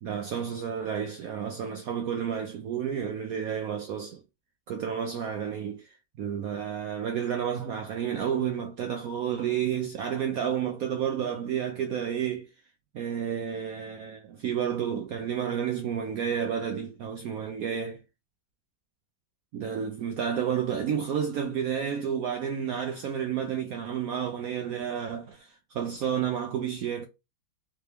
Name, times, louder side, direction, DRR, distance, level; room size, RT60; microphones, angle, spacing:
voice 1, 0.0-4.2 4.7-5.8 6.2-12.5 12.9-18.0 19.5-27.0, right 8 dB, 75° right, 0.8 m, -31 dB
3.4 x 2.9 x 3.3 m
omnidirectional pair, 2.0 m